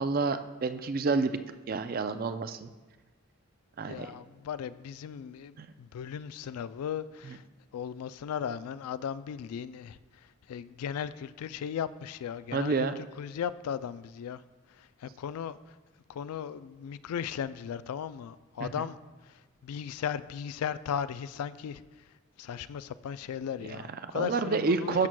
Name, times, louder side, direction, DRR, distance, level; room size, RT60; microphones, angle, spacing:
voice 1, 0.0-1.3 1.7-2.7 3.8-4.1 5.6-5.7 12.5-12.9 18.6-18.9 23.7-25.1, right 4 dB, 40° right, 0.3 m, -29 dB
voice 2, 3.9-7.4 7.7-14.4 14.7-15.8 16.1-19.0 19.2-21.8 22.4-25.1, left 8 dB, 80° left, 0.3 m, -37 dB
13.0 x 6.1 x 2.2 m
head